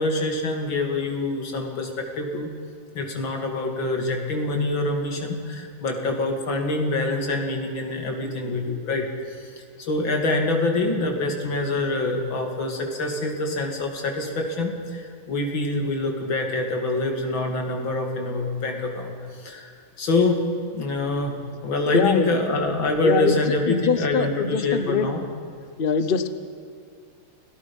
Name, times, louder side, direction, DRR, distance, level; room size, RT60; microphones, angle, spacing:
voice 1, 0.0-2.5 2.9-9.5 9.8-19.7 20.0-20.4 20.7-21.3 21.6-25.2, left 2 dB, 60° left, 3 dB, 3.1 m, -25 dB
voice 2, 21.9-22.4 23.0-23.4 23.6-25.1 25.8-26.3, left 6 dB, 80° left, 11 dB, 0.5 m, -23 dB
29.0 x 17.5 x 5.5 m, 2.3 s
omnidirectional pair, 2.4 m